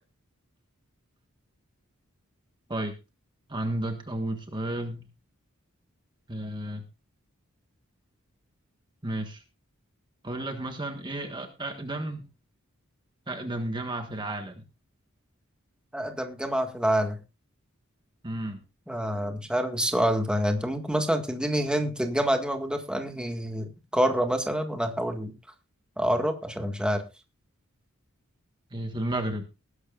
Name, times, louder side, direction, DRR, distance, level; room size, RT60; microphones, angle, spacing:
voice 1, 3.5-5.1 6.3-6.8 9.0-9.4 10.2-12.2 13.3-14.6 18.2-18.6 28.7-29.4, right 1 dB, 20° right, 5 dB, 1.5 m, -32 dB
voice 2, 15.9-17.2 18.9-25.3 26.0-27.0, equal, 5° right, 4 dB, 1.8 m, -27 dB
20.0 x 11.5 x 2.5 m, 0.27 s
head